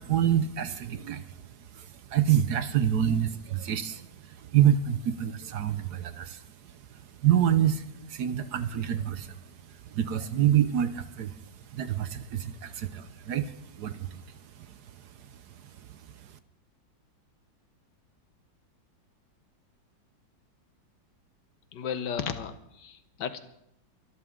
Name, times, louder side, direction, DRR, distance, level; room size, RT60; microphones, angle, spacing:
voice 1, 0.0-14.7 15.3-16.3, right 10 dB, 65° right, 12 dB, 1.2 m, -28 dB
voice 2, 21.7-23.4, left 7 dB, 70° left, 11 dB, 1.5 m, -34 dB
23.5 x 13.0 x 3.7 m, 0.77 s
omnidirectional pair, 2.0 m